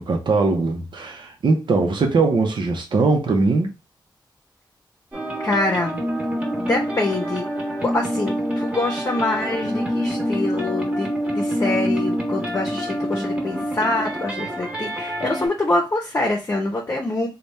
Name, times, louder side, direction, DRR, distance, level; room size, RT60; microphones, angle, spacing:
voice 1, 0.0-3.7, right 3 dB, 75° right, 0.8 m, -20 dB
sound 1, 5.1-15.5, equal, 15° right, 1.2 m, -26 dB
voice 2, 5.4-6.0 6.6-7.4 7.8-11.1 11.3-17.3, left 2 dB, 35° left, 0.7 m, -25 dB
3.4 x 2.3 x 4.1 m
wide cardioid pair, 140°, 8 cm